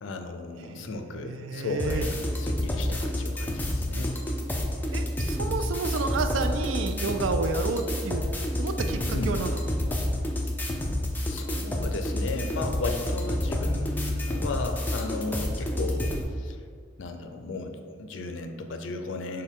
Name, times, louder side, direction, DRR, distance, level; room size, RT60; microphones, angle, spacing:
voice 1, 0.0-4.2 9.1-9.4 11.3-16.1 16.4-16.6 17.0-19.4, left 3 dB, 80° left, 5 dB, 0.4 m, -35 dB
voice 2, 0.7-2.1 4.9-8.2 8.6-9.6 15.6-15.7, right 4 dB, 90° right, 7 dB, 0.4 m, -31 dB
sound 1, 1.8-16.2, left 1 dB, 10° left, 0.3 m, -29 dB
6.2 x 2.2 x 3.6 m, 2.1 s
head